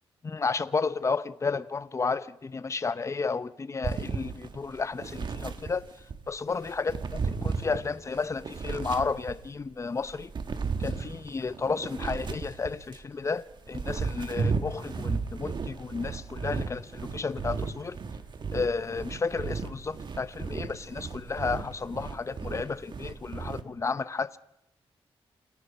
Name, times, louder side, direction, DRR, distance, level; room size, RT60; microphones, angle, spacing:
voice 1, 0.2-5.8 6.3-10.3 10.8-18.0 18.5-24.4, left 4 dB, 30° left, 0.8 m, -32 dB
sound 1, 3.8-6.2 6.6-9.6 10.0-13.0 13.5-23.6, right 5 dB, 45° right, 1.8 m, -34 dB
29.0 x 23.5 x 5.5 m
wide cardioid pair, 125°, 10 cm